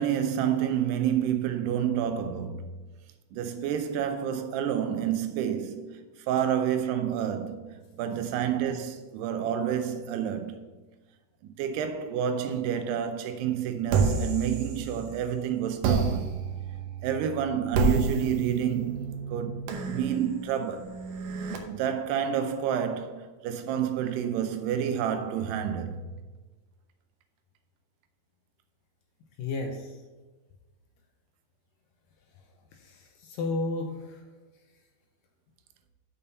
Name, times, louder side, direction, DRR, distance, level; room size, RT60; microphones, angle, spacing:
voice 1, 0.0-2.7 3.3-10.6 11.6-16.3 17.0-19.0 19.3-20.9 21.7-26.0, right 9 dB, 90° right, 2.8 m, -29 dB
sound 1, 13.9-15.3 15.8-21.6, right 4 dB, 70° right, 2.1 m, -30 dB
voice 2, 29.4-30.0 32.8-34.2, left 2 dB, 75° left, 2.2 m, -33 dB
7.0 x 5.5 x 6.8 m
omnidirectional pair, 4.6 m